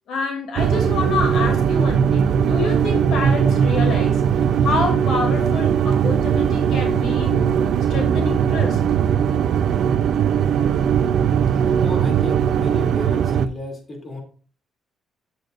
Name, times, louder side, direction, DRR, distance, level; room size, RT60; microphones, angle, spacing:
voice 1, 0.1-7.5 7.9-8.8, left 3 dB, 75° left, 2 dB, 2.7 m, -27 dB
sound 1, 0.6-13.5, right 8 dB, 70° right, 0.5 m, -19 dB
voice 2, 11.8-14.2, left 1 dB, 40° left, 1 dB, 2.9 m, -33 dB
10.5 x 7.9 x 2.6 m, 0.40 s
cardioid pair, 90°, 0 cm